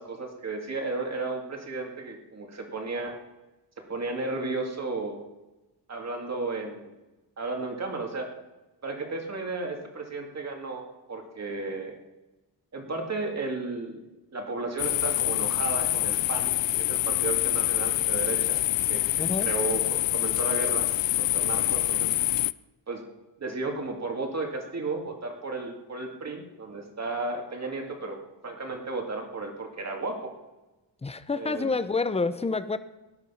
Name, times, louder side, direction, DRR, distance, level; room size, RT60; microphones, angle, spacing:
voice 1, 0.0-3.2 3.9-5.2 5.9-6.9 7.4-8.3 8.8-12.0 12.7-14.0 14.3-18.6 18.9-20.9 21.2-22.1 22.9-23.0 23.4-30.3 31.3-31.7, right 3 dB, 35° right, 3 dB, 2.5 m, -34 dB
sound 1, 14.8-22.5, left 15 dB, 75° left, 0.5 m, -26 dB
voice 2, 19.2-19.5 31.0-32.8, left 4 dB, 15° left, 13 dB, 0.6 m, -28 dB
18.0 x 11.5 x 5.7 m, 1.1 s
wide cardioid pair, 160°, 44 cm